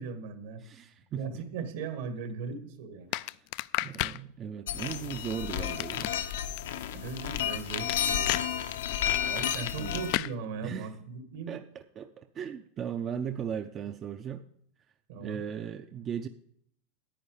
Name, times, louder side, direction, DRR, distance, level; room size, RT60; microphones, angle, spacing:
voice 1, 0.0-0.6 1.1-3.2 6.9-8.3 9.2-11.6 15.1-15.4, right 5 dB, 70° right, 7 dB, 2.0 m, -38 dB
voice 2, 0.6-1.4 3.1-3.5 3.8-6.2 9.8-10.0 10.6-10.9 11.5-14.4 15.2-16.3, right 8 dB, 30° right, 8 dB, 0.5 m, -37 dB
sound 1, 3.1-4.2 5.6-6.6 7.9-8.5 10.1-10.3, left 19 dB, 50° left, 0.3 m, -32 dB
sound 2, 4.7-10.2, left 10 dB, 85° left, 1.0 m, -32 dB
10.0 x 9.0 x 5.0 m, 0.70 s
supercardioid pair, 145°, 0 cm